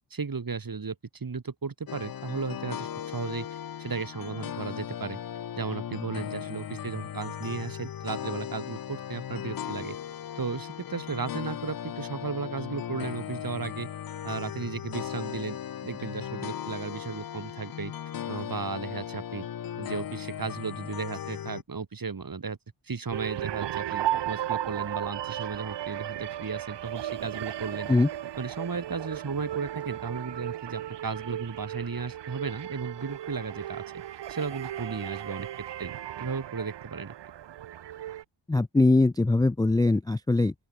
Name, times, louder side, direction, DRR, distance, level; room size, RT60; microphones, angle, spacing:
voice 1, 0.1-3.5 3.8-5.2 5.6-10.0 10.4-13.9 14.2-17.9 18.3-19.5 19.8-22.6 22.9-27.9 28.4-33.8 34.3-35.5 35.8-35.9 36.2-37.1, right 5 dB, 45° right, 3.6 m, -35 dB
sound 1, 1.9-21.6, left 9 dB, 50° left, 0.6 m, -37 dB
sound 2, 23.1-38.2, right 12 dB, 65° right, 0.6 m, -35 dB
voice 2, 38.5-40.5, left 2 dB, 10° left, 0.4 m, -22 dB
open air
wide cardioid pair, 80°, 46 cm